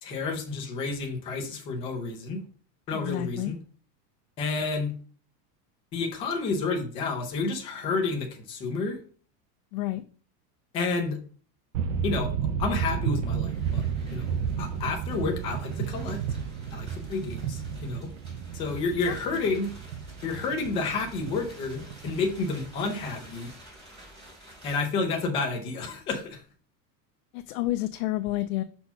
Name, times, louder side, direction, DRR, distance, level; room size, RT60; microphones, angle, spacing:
voice 1, 0.0-2.4 2.9-3.5 4.4-4.9 5.9-9.0 10.7-11.2 12.0-12.3 12.6-13.8 14.1-16.2 16.7-18.1 18.5-19.7 20.2-23.5 24.6-26.4, left 4 dB, 15° left, 3 dB, 0.3 m, -30 dB
voice 2, 2.9-3.5 9.7-10.0 19.1-19.2 27.3-28.6, left 16 dB, 65° left, 10 dB, 0.5 m, -29 dB
sound 1, 11.7-23.3, right 7 dB, 55° right, 0.5 m, -32 dB
sound 2, 13.5-24.8, right 1 dB, 10° right, 3.5 m, -50 dB
5.4 x 4.3 x 5.6 m, 0.42 s
supercardioid pair, 175°, 47 cm